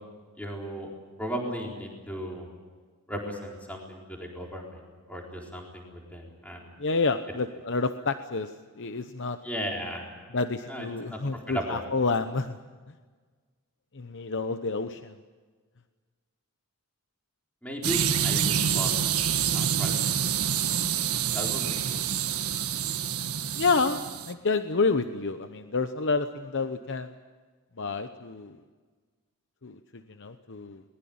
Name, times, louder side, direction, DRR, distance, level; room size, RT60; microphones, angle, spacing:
voice 1, 0.4-0.9 1.2-2.5 3.1-6.7 9.4-10.1 10.7-11.8 17.6-18.9 19.5-20.0 20.2-20.3 21.3-22.0, equal, 5° left, -1 dB, 4.1 m, -36 dB
voice 2, 6.8-9.4 10.3-12.6 13.9-15.2 23.5-27.1 27.8-28.6 29.6-30.8, left 4 dB, 55° left, 9 dB, 0.9 m, -29 dB
sound 1, 17.8-24.3, right 8 dB, 85° right, 1.5 m, -27 dB
22.0 x 20.5 x 8.7 m, 1.4 s
head